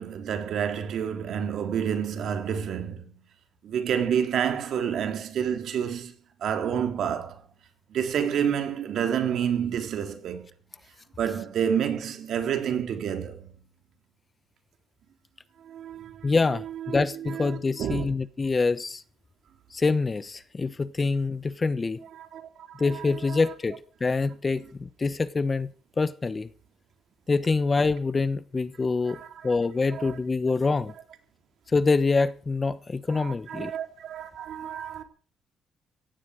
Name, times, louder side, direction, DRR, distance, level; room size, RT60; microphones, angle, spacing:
voice 1, 0.0-3.1 3.6-6.1 6.4-7.4 7.9-10.5 11.2-13.5 15.6-16.3 16.8-18.1 22.2-23.5 29.1-29.3 29.9-30.2 33.1-35.0, right 8 dB, 70° right, 3.6 m, -29 dB
voice 2, 16.2-19.0 19.7-22.0 22.8-25.7 26.0-26.5 27.3-30.9 31.7-33.7, left 4 dB, 30° left, 1.1 m, -25 dB
17.0 x 15.5 x 5.1 m
cardioid pair, 90°, 0 cm